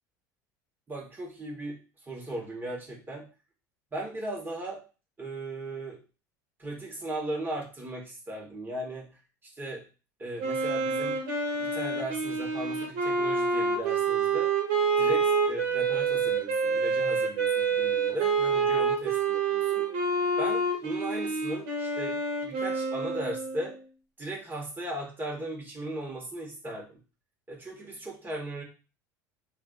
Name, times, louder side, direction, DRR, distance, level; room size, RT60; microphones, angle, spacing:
voice 1, 0.9-1.8 2.1-3.3 3.9-4.8 5.2-6.0 6.6-9.1 9.6-9.8 10.2-11.2 11.5-14.5 15.0-19.9 20.4-23.8 24.2-27.0 27.5-28.6, right 1 dB, 20° right, -1 dB, 1.4 m, -37 dB
Wind instrument woodwind instrument, 10.4-23.8, right 4 dB, 70° right, 1.2 m, -27 dB
3.3 x 2.5 x 2.5 m, 0.34 s
hypercardioid pair, 85°, 10 cm